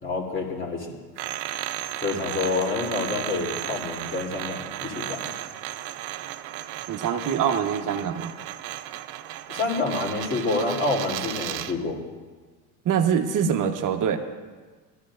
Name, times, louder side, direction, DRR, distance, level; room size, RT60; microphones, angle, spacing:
voice 1, 0.0-0.9 2.0-5.3 9.5-12.0, left 3 dB, 25° left, 0 dB, 3.2 m, -28 dB
sound 1, 1.2-11.8, right 13 dB, 60° right, 0.8 m, -34 dB
voice 2, 6.9-8.3 12.8-14.2, right 8 dB, 45° right, 5 dB, 1.3 m, -24 dB
20.5 x 14.0 x 2.6 m, 1.4 s
hypercardioid pair, 85°, 45 cm